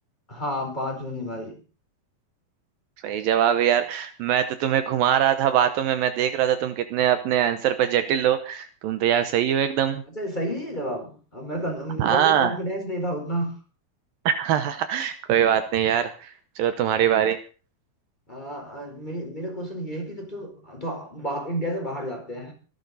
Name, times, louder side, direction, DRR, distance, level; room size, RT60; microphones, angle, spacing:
voice 1, 0.3-1.6 10.1-13.6 18.3-22.5, equal, 10° left, 4.0 m, -31 dB
voice 2, 3.0-10.0 12.0-12.5 14.3-17.4, right 10 dB, 75° right, 2.5 m, -22 dB
23.5 x 11.0 x 4.0 m
omnidirectional pair, 4.4 m